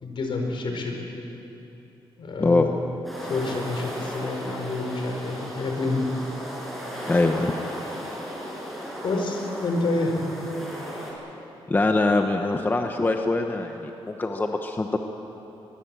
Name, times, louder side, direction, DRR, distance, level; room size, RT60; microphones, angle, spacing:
voice 1, 0.0-1.0 2.2-2.7 3.3-6.1 9.0-10.2, left 3 dB, 65° left, 2 dB, 4.5 m, -28 dB
sound 1, 3.0-11.1, equal, ahead, 7.1 m, -36 dB
voice 2, 7.1-7.5 11.7-15.0, left 2 dB, 20° left, 4 dB, 1.1 m, -23 dB
23.0 x 22.0 x 7.6 m, 3.0 s
cardioid pair, 120°, 9 cm